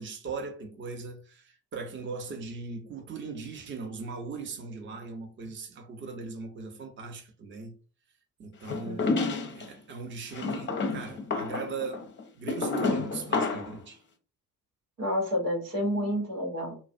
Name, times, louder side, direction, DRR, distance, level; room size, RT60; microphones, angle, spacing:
voice 1, 0.0-7.8 8.4-14.0, right 4 dB, 25° right, 0.6 m, -39 dB
sound 1, 8.7-9.7 10.3-13.8, left 3 dB, 25° left, 0.6 m, -30 dB
voice 2, 8.8-9.3 15.0-16.8, equal, 85° right, 1.0 m, -30 dB
2.3 x 2.1 x 2.5 m
hypercardioid pair, 45°, 45 cm